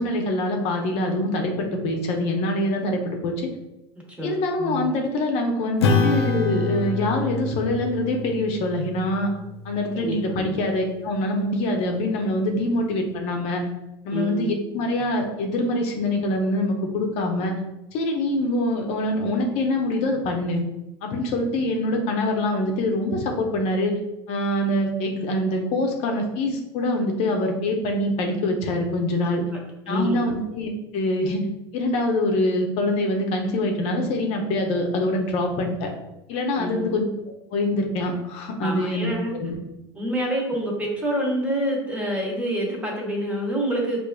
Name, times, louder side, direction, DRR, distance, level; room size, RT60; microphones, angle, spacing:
voice 1, 0.0-3.5 4.2-9.3 9.6-13.6 14.0-17.5 17.9-20.6 21.0-23.9 24.3-29.4 29.9-31.4 31.7-35.9 36.3-37.0 37.5-39.6, left 1 dB, 55° left, 2 dB, 0.7 m, -24 dB
voice 2, 4.2-4.9 9.9-10.6 14.1-14.6 29.5-29.6 29.9-30.2 36.6-37.0 38.6-39.3 39.9-44.0, right 1 dB, 10° right, -2 dB, 1.1 m, -27 dB
Acoustic guitar / Strum, 5.8-10.6, left 3 dB, 90° left, 0.4 m, -27 dB
4.7 x 2.5 x 2.3 m, 0.92 s
hypercardioid pair, 100°, 13 cm